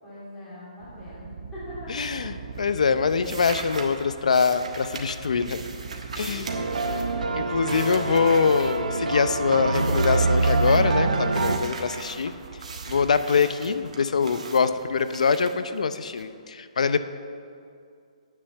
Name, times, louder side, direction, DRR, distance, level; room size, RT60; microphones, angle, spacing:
voice 1, 0.0-2.4 6.1-6.9, left 1 dB, 10° left, -10 dB, 2.9 m, -42 dB
sound 1, 0.8-15.1, right 6 dB, 40° right, 0.4 m, -42 dB
voice 2, 1.9-5.6 6.2-6.5 7.3-12.3 12.9-17.0, left 5 dB, 65° left, 12 dB, 0.6 m, -24 dB
sound 2, 1.9-2.3 2.6-9.3 9.7-10.9 11.3-16.2, right 4 dB, 65° right, 1.5 m, -41 dB
sound 3, 6.5-11.6, right 3 dB, 85° right, 0.9 m, -25 dB
8.4 x 7.0 x 8.1 m, 2.4 s
hypercardioid pair, 175°, 4 cm